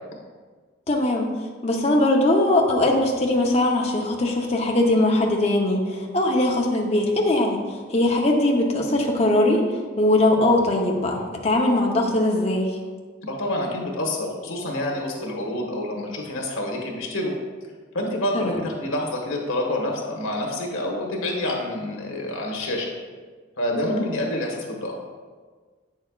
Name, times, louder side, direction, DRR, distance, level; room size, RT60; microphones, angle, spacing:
voice 1, 0.9-1.3 1.6-7.6 7.9-9.6 10.0-12.7 18.3-18.6 23.7-24.0, left 1 dB, 30° left, 0 dB, 0.8 m, -21 dB
voice 2, 13.2-17.3 17.9-22.9 23.6-25.0, left 1 dB, 85° left, 0 dB, 1.4 m, -27 dB
8.5 x 6.4 x 2.4 m, 1.5 s
head